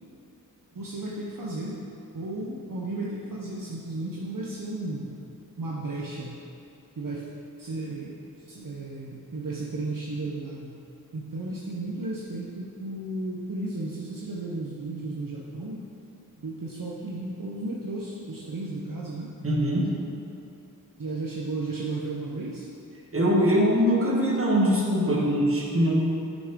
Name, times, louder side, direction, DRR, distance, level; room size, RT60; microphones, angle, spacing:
voice 1, 0.7-1.8 2.1-5.2 5.6-6.4 7.0-7.3 7.6-10.8 11.1-15.8 16.4-19.3 21.0-22.7, right 2 dB, 60° right, -4 dB, 0.9 m, -34 dB
voice 2, 19.4-19.9 23.1-25.9, equal, 35° right, -3 dB, 1.5 m, -22 dB
9.2 x 6.2 x 3.7 m, 2.7 s
wide cardioid pair, 55°, 37 cm